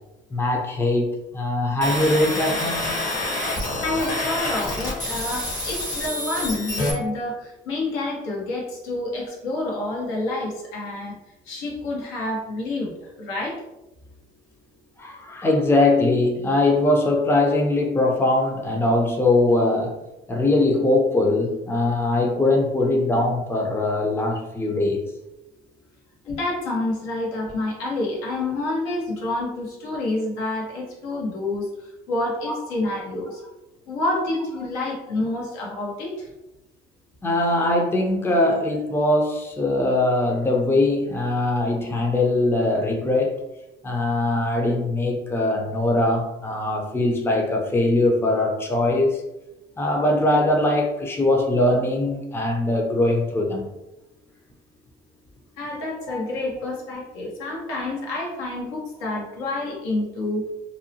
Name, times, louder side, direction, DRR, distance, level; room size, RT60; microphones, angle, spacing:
voice 1, 0.3-2.9 15.0-19.9 20.3-25.0 32.4-32.6 37.2-43.4 43.8-49.2 49.8-53.7 56.1-56.2, left 2 dB, 10° left, 0 dB, 0.5 m, -21 dB
sound 1, 1.8-6.9, left 2 dB, 40° left, 0.9 m, -27 dB
voice 2, 3.8-11.1 11.5-12.9 13.2-13.5 26.2-31.7 32.1-33.4 33.9-36.1 55.6-60.4, left 2 dB, 85° left, -3 dB, 0.9 m, -28 dB
2.7 x 2.0 x 2.7 m, 0.95 s
supercardioid pair, 85°, 19 cm